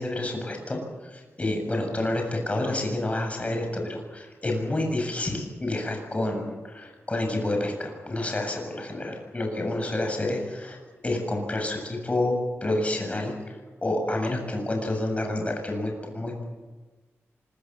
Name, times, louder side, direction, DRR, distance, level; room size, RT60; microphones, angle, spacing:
voice 1, 0.0-12.4 12.6-16.4, left 1 dB, 25° left, 3 dB, 7.5 m, -29 dB
25.5 x 22.5 x 7.3 m, 1.3 s
wide cardioid pair, 105°, 5 cm